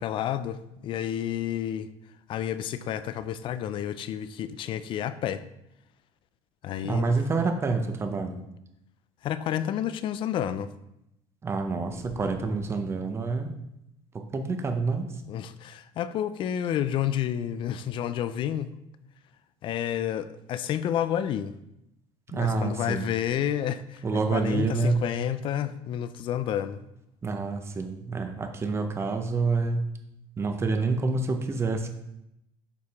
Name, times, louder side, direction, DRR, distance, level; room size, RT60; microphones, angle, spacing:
voice 1, 0.0-1.9 2.3-5.4 6.6-7.2 9.2-10.7 15.3-18.7 19.6-21.5 22.3-24.0 24.3-26.8, left 10 dB, 45° left, 13 dB, 0.4 m, -30 dB
voice 2, 6.8-8.4 11.4-13.6 14.1-15.1 22.3-23.1 24.0-25.0 27.2-29.9 30.4-31.9, right 4 dB, 20° right, 6 dB, 0.6 m, -27 dB
sound 1, 11.8-13.4, left 2 dB, 85° left, 1.8 m, -47 dB
6.9 x 4.7 x 3.5 m, 0.83 s
cardioid pair, 135°, 12 cm